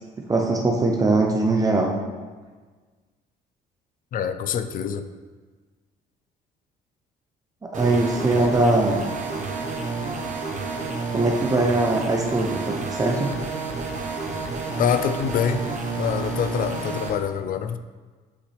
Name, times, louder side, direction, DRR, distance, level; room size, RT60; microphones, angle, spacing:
voice 1, 0.3-1.9 7.7-9.0 11.1-13.3, right 2 dB, 20° right, 0 dB, 0.8 m, -21 dB
voice 2, 4.1-5.1 14.8-15.6 16.0-17.8, left 8 dB, 55° left, 10 dB, 0.5 m, -25 dB
sound 1, 7.7-17.1, right 3 dB, 45° right, 1.2 m, -30 dB
8.1 x 5.8 x 3.4 m, 1.4 s
cardioid pair, 110°, 17 cm